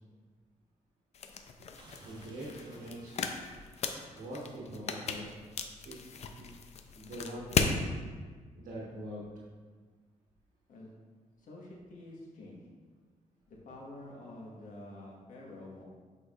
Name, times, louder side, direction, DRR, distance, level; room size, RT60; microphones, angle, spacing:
sound 1, 1.1-7.8, left 5 dB, 50° left, 0.5 m, -36 dB
sound 2, 1.8-3.7, right 1 dB, 30° right, 1.0 m, -56 dB
voice 1, 2.0-3.1 4.1-5.3 5.8-6.0 6.3-6.5 6.9-7.6 8.6-9.2, right 1 dB, 75° right, -5 dB, 1.3 m, -43 dB
voice 2, 11.4-12.7 13.5-15.8, left 1 dB, 70° left, -2 dB, 1.4 m, -48 dB
8.4 x 4.8 x 2.5 m, 1.5 s
cardioid pair, 120°, 14 cm